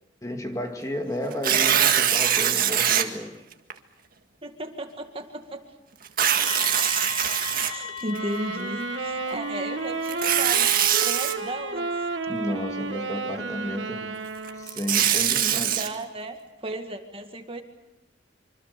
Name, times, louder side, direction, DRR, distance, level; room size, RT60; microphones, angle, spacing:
voice 1, 0.2-3.4 12.3-14.2 14.5-15.8, left 1 dB, 20° left, 4 dB, 2.3 m, -32 dB
Tearing, 1.3-3.0 3.7-3.8 6.0-8.2 10.0-11.3 14.5-15.9, right 9 dB, 50° right, 1.9 m, -22 dB
voice 2, 4.4-5.6 7.7-12.1 15.4-17.6, right 1 dB, 30° right, 5 dB, 2.1 m, -35 dB
sound 1, 6.4-15.1, left 7 dB, 35° left, 2.5 m, -40 dB
sound 2, 8.0-14.9, right 4 dB, 75° right, 1.5 m, -32 dB
26.0 x 25.5 x 6.9 m, 0.98 s
head